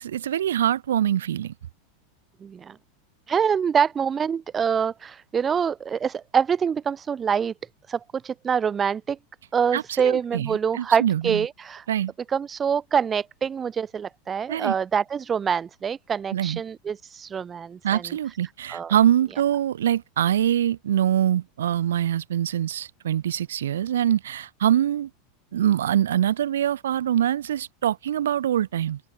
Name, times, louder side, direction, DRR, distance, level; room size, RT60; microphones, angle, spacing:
voice 1, 0.0-1.5 9.7-11.4 11.9-12.1 14.5-14.8 16.3-16.6 17.8-25.1 25.5-29.0, right 10 dB, 75° right, 1.1 m, -24 dB
voice 2, 2.4-2.8 3.3-7.5 7.9-9.2 9.5-11.8 12.3-18.0 18.7-18.9, right 7 dB, 25° right, 0.9 m, -25 dB
hypercardioid pair, 90°, 0 cm